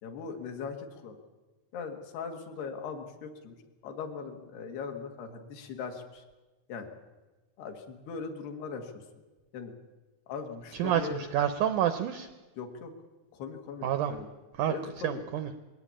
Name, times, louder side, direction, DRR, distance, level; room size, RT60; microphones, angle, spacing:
voice 1, 0.0-1.2 1.7-3.6 3.8-6.2 6.7-6.9 7.6-9.2 9.5-9.7 10.3-11.2 12.6-12.9 13.3-14.3 14.7-15.2, left 5 dB, 80° left, 5 dB, 3.8 m, -40 dB
voice 2, 10.7-12.3 13.8-14.1 14.6-15.5, right 10 dB, 85° right, 10 dB, 1.8 m, -29 dB
21.0 x 17.0 x 8.6 m, 1.2 s
omnidirectional pair, 4.7 m